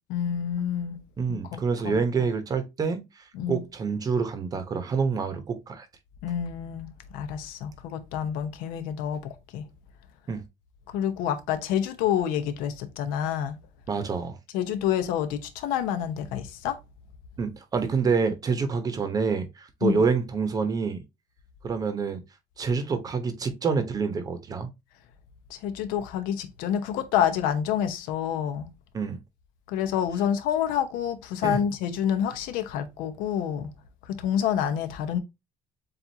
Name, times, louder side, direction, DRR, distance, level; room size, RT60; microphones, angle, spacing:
voice 1, 0.1-1.0 1.3-2.3 3.3-3.6 6.2-9.7 10.9-13.6 14.5-16.8 19.8-20.0 25.5-28.7 29.7-33.7 34.0-35.2, left 9 dB, 85° left, 0.9 m, -28 dB
voice 2, 1.2-3.0 3.5-5.8 10.3-10.4 13.9-14.4 17.4-21.0 21.6-22.2 22.6-24.7 28.9-29.2 31.4-31.6, right 5 dB, 25° right, 0.9 m, -27 dB
7.5 x 2.5 x 2.7 m
cardioid pair, 160°, 14 cm